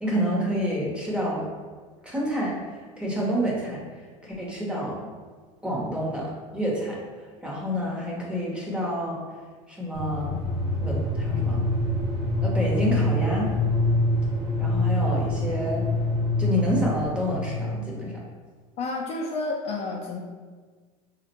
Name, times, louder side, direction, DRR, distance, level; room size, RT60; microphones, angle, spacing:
voice 1, 0.0-1.5 2.0-2.6 3.0-3.8 4.2-5.0 5.6-7.0 7.4-9.2 9.7-10.4 10.8-11.6 12.4-13.5 14.6-15.8 16.4-18.2, equal, 5° right, -4 dB, 0.8 m, -28 dB
sound 1, 9.9-17.8, left 1 dB, 30° right, 1.1 m, -25 dB
voice 2, 18.8-20.2, left 3 dB, 40° left, -1 dB, 0.4 m, -30 dB
3.4 x 2.1 x 2.8 m, 1.5 s
supercardioid pair, 115°, 17 cm